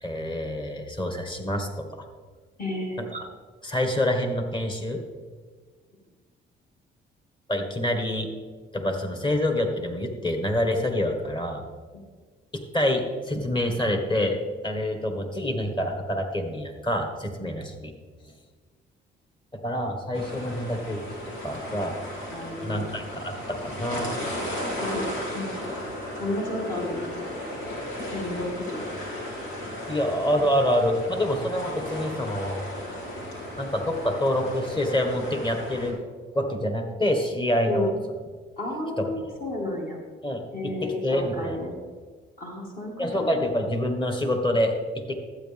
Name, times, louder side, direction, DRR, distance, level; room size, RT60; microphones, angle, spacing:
voice 1, 0.0-2.1 3.0-3.3 3.6-5.0 7.5-8.3 8.7-11.6 12.5-14.4 14.6-17.9 19.5-21.0 21.4-22.0 22.6-24.2 29.9-32.6 33.6-36.0 36.3-38.0 39.0-39.1 40.2-40.4 40.8-41.6 43.0-45.1, left 1 dB, 25° left, 5 dB, 1.6 m, -27 dB
voice 2, 2.6-3.0 22.3-22.9 24.8-25.7 26.2-27.3 28.0-28.8 37.6-37.9 38.6-40.0 40.5-41.7 42.4-43.4, left 1 dB, 45° left, -2 dB, 2.6 m, -32 dB
sound 1, 20.1-35.9, left 1 dB, 85° left, 2.5 m, -35 dB
12.0 x 8.5 x 3.6 m, 1.5 s
cardioid pair, 90°, 20 cm